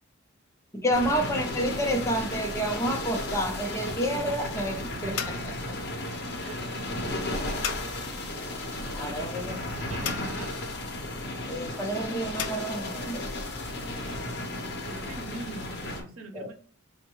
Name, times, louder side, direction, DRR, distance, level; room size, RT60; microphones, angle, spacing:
voice 1, 0.7-5.6 8.9-9.9 11.5-13.2 16.3-16.5, equal, 15° left, 2 dB, 0.6 m, -29 dB
sound 1, 0.9-16.0, left 1 dB, 50° left, 0.8 m, -34 dB
sound 2, 5.1-12.5, left 8 dB, 70° left, 0.4 m, -40 dB
voice 2, 6.1-6.6 7.3-7.4 9.9-10.5 14.9-16.6, right 2 dB, 85° right, 4 dB, 0.7 m, -42 dB
4.2 x 2.1 x 3.0 m, 0.43 s
head